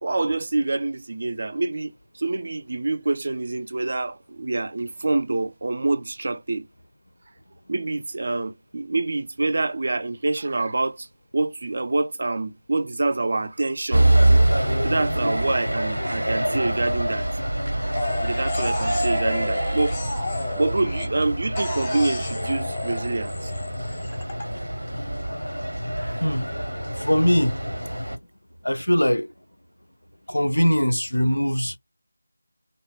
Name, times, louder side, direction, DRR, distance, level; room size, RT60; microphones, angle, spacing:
voice 1, 0.0-6.7 7.7-11.1 11.3-14.1 14.8-17.3 18.2-20.0 20.6-23.5, right 2 dB, 45° right, 0.3 m, -26 dB
sound 1, 13.9-28.2, right 1 dB, 80° right, 0.7 m, -25 dB
sound 2, 17.9-21.2 21.6-24.4, left 3 dB, 15° left, 0.6 m, -33 dB
voice 2, 26.2-26.5 27.0-27.6 28.6-29.3 30.3-31.8, equal, 70° left, 0.4 m, -21 dB
2.7 x 2.1 x 2.3 m
figure-of-eight pair, 165°, 0 cm